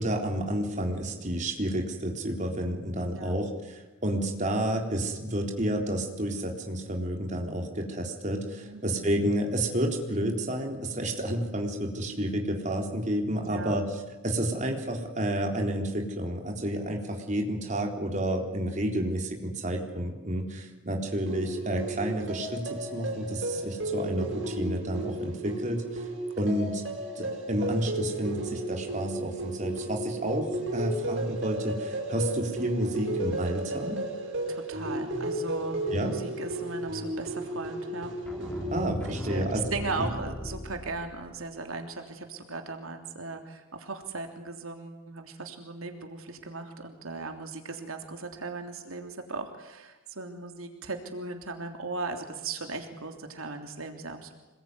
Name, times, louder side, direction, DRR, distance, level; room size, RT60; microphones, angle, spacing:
voice 1, 0.0-13.9 14.2-26.0 26.4-26.8 27.2-34.0 35.9-36.1 38.7-39.6 40.0-40.1, right 1 dB, 35° right, 1 dB, 3.9 m, -30 dB
voice 2, 3.1-3.4 8.6-9.1 13.3-13.8 20.9-21.0 34.5-38.1 39.1-54.3, right 3 dB, 85° right, 4 dB, 3.3 m, -38 dB
sound 1, 21.3-38.8, right 1 dB, 60° right, 6.9 m, -34 dB
sound 2, 38.2-41.4, left 1 dB, 5° left, 3.7 m, -37 dB
27.0 x 21.0 x 9.7 m, 1.1 s
head